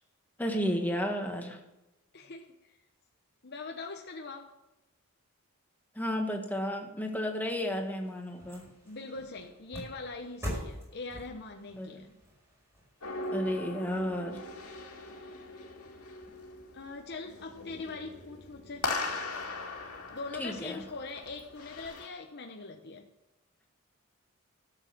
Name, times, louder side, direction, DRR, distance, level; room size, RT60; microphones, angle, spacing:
voice 1, 0.4-1.6 5.9-8.7 11.8-12.1 13.3-14.4 20.4-20.8, equal, 10° left, 3 dB, 1.5 m, -33 dB
voice 2, 2.1-2.8 3.4-4.6 8.8-12.1 16.7-18.9 20.1-23.1, left 3 dB, 50° left, 3 dB, 0.9 m, -42 dB
sound 1, 7.5-13.9 14.4-14.5, equal, 10° right, 5.3 m, -44 dB
sound 2, 13.0-22.1, left 2 dB, 85° left, 2.3 m, -40 dB
12.5 x 7.3 x 6.8 m, 0.98 s
head